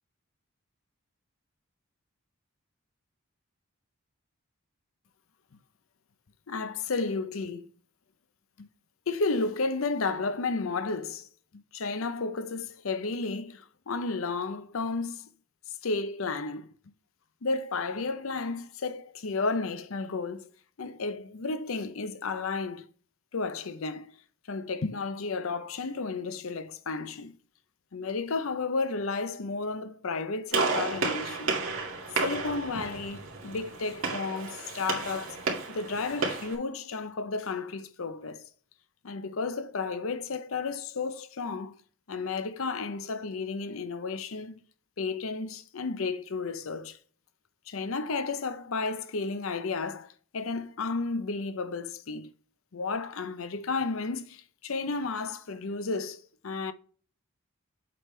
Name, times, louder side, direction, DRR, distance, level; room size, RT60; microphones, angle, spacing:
voice 1, 6.5-7.7 8.6-8.7 9.1-11.3 11.7-15.3 15.8-16.7 17.4-20.5 20.8-22.9 23.3-24.2 24.5-27.4 27.9-31.6 32.2-35.4 35.7-38.5 39.0-41.8 42.1-44.6 45.0-47.0 47.7-52.3 52.7-56.7, left 4 dB, 70° left, 0.7 m, -32 dB
Gunshot gunfire, 30.5-36.5, right 3 dB, 70° right, 2.1 m, -32 dB
7.7 x 5.2 x 3.2 m
head